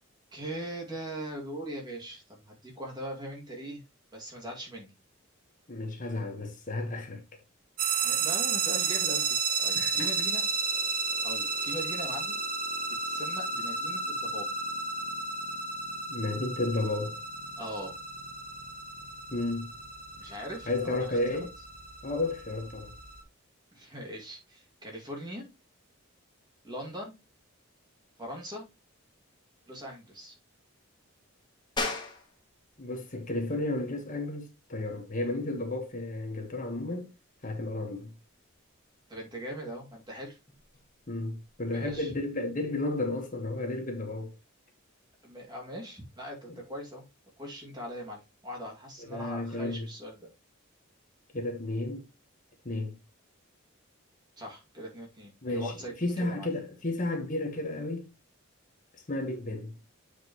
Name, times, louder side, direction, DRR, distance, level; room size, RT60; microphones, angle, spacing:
voice 1, 0.3-3.8 4.1-4.9 8.0-9.2 9.6-10.5 10.9-12.4 13.0-14.5 17.6-18.0 20.1-21.4 23.7-25.4 26.6-27.2 28.2-28.6 29.7-30.3 39.1-40.4 41.7-42.1 45.2-47.0 47.4-50.2 54.4-56.5, equal, 20° right, 2.3 m, -40 dB
voice 2, 5.7-7.2 9.7-10.0 16.1-17.2 19.3-19.7 20.7-21.5 22.0-22.9 32.8-37.1 37.4-38.1 41.1-44.3 49.0-49.9 51.3-52.1 52.6-53.0 55.4-58.1 59.1-59.8, left 2 dB, 40° left, 1.3 m, -32 dB
sound 1, 7.8-23.2, right 5 dB, 40° right, 0.9 m, -33 dB
sound 2, 31.8-42.0, left 3 dB, 20° left, 1.5 m, -43 dB
8.2 x 5.0 x 3.0 m
head